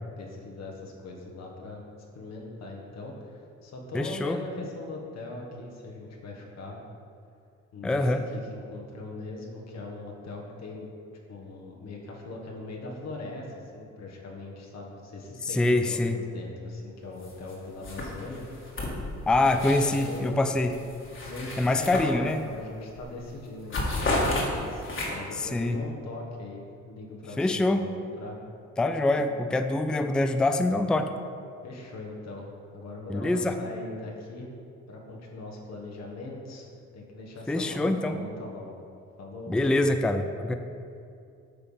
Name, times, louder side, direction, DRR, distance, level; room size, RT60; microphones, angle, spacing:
voice 1, 0.2-1.8 2.1-6.8 7.7-10.9 11.3-18.5 19.6-20.4 21.2-28.4 31.6-34.5 34.9-38.8 39.2-39.8, left 2 dB, 60° left, -1 dB, 1.3 m, -40 dB
voice 2, 3.9-4.4 7.8-8.2 15.5-16.2 19.3-20.7 21.6-22.4 25.4-25.8 27.4-27.8 28.8-31.1 33.1-33.6 37.5-38.2 39.5-40.5, left 2 dB, 5° left, 8 dB, 0.3 m, -25 dB
sound 1, 17.2-17.5 17.8-20.3 20.7-22.6 23.0-23.2 23.5-25.4, left 1 dB, 40° left, 1.7 m, -32 dB
8.4 x 3.4 x 5.5 m, 2.5 s
cardioid pair, 90°, 30 cm